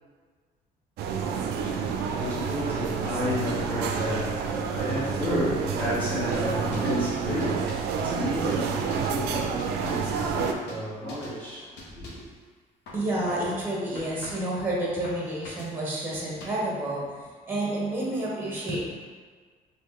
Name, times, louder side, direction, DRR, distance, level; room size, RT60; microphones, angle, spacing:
sound 1, 1.0-10.5, right 6 dB, 75° right, 0.4 m, -29 dB
voice 1, 1.1-12.2, equal, 10° left, -7 dB, 1.2 m, -32 dB
sound 2, 6.3-7.0 7.4-8.0 8.5-9.2 9.6-10.2 10.7-10.8 11.1-11.4 11.8-12.3 12.9-13.6 13.9-14.6 15.0-15.7 16.1-16.7, left 2 dB, 80° left, 0.7 m, -44 dB
voice 2, 12.9-18.9, right 1 dB, 10° right, -4 dB, 0.9 m, -30 dB
3.0 x 2.6 x 3.6 m, 1.5 s
cardioid pair, 110°, 17 cm